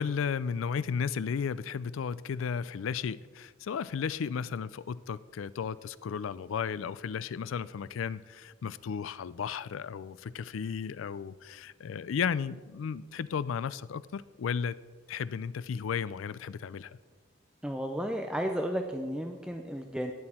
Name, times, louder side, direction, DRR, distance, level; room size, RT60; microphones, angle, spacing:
voice 1, 0.0-14.8 15.1-17.0, left 6 dB, 85° left, 0.4 m, -34 dB
voice 2, 17.6-20.1, equal, 5° right, 0.4 m, -33 dB
11.5 x 9.8 x 4.2 m
head